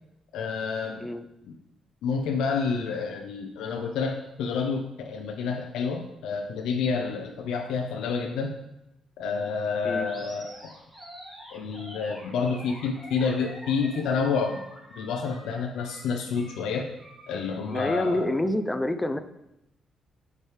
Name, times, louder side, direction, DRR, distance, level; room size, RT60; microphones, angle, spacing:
voice 1, 0.3-1.1 1.4-1.5 2.0-8.6 9.2-10.5 11.5-14.6 15.0-16.9 17.3-18.3, left 5 dB, 85° left, 3 dB, 0.5 m, -29 dB
Animal, 10.0-18.2, equal, 25° right, 2.2 m, -46 dB
voice 2, 17.7-19.2, left 1 dB, 10° left, 9 dB, 0.4 m, -27 dB
7.1 x 4.7 x 3.2 m, 0.88 s
cardioid pair, 90°, 0 cm